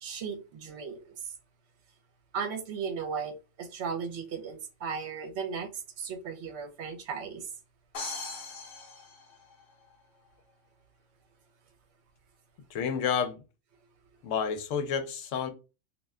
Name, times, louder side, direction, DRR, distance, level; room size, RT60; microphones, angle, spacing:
voice 1, 0.0-1.3 2.3-7.5, right 6 dB, 65° right, 0.8 m, -36 dB
sound 1, 7.9-9.9, left 3 dB, 55° left, 0.8 m, -40 dB
voice 2, 12.7-13.4 14.2-15.5, left 7 dB, 85° left, 0.9 m, -30 dB
2.4 x 2.1 x 3.5 m
omnidirectional pair, 1.3 m